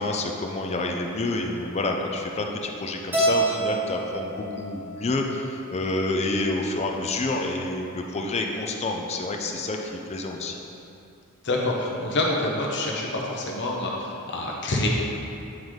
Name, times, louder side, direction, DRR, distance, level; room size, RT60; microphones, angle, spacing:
voice 1, 0.0-10.6, left 2 dB, 30° left, 2 dB, 0.4 m, -28 dB
Keyboard (musical), 3.1-5.5, right 2 dB, 10° right, 0.8 m, -27 dB
voice 2, 11.4-14.9, left 2 dB, 55° left, -2 dB, 0.8 m, -27 dB
8.7 x 3.9 x 3.1 m, 2.7 s
head